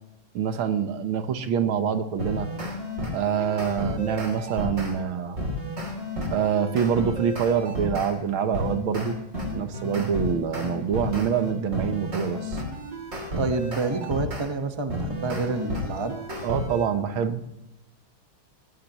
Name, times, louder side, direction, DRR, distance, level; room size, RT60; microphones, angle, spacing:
voice 1, 0.3-2.5 3.1-5.4 6.3-9.2 9.5-12.6 16.4-17.4, right 7 dB, 75° right, 9 dB, 1.9 m, -25 dB
sound 1, 2.2-4.9 5.4-8.1 8.5-14.5 14.9-16.9, left 1 dB, 35° right, 3.6 m, -32 dB
voice 2, 13.4-16.2, right 3 dB, 15° right, 6 dB, 1.0 m, -28 dB
19.5 x 17.5 x 3.1 m, 0.92 s
omnidirectional pair, 2.3 m